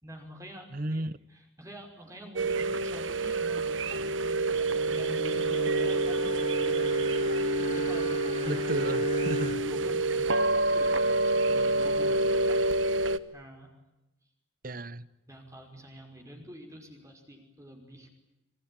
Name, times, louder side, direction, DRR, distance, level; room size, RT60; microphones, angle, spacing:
voice 1, 0.0-1.0 1.3-8.8 9.6-12.6 13.3-13.7 15.3-18.1, equal, 15° right, 5.6 m, -46 dB
voice 2, 0.7-1.2 8.5-9.6 14.6-15.1, right 2 dB, 45° right, 1.1 m, -33 dB
sound 1, 2.4-13.2, right 2 dB, 90° right, 1.3 m, -27 dB
Bowed string instrument, 4.6-9.9, equal, 40° left, 3.0 m, -37 dB
27.5 x 23.5 x 9.0 m
head